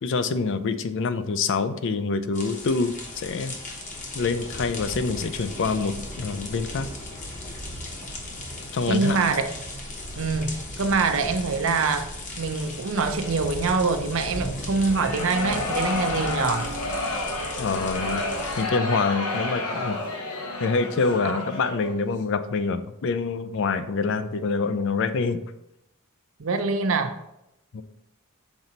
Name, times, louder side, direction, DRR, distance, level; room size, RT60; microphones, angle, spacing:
voice 1, 0.0-3.6 4.1-6.9 8.7-9.2 17.6-18.2 18.6-20.0 20.6-25.4 27.7-27.8, left 4 dB, 60° left, 11 dB, 0.4 m, -26 dB
sound 1, 2.3-18.6, left 1 dB, 35° left, 1.0 m, -36 dB
voice 2, 8.9-9.5 10.2-12.1 12.4-16.7 21.2-21.4 26.4-27.2, right 4 dB, 65° right, 7 dB, 0.6 m, -24 dB
sound 2, 14.8-22.0, left 2 dB, 90° left, 1.1 m, -30 dB
6.1 x 3.9 x 4.1 m, 0.85 s
head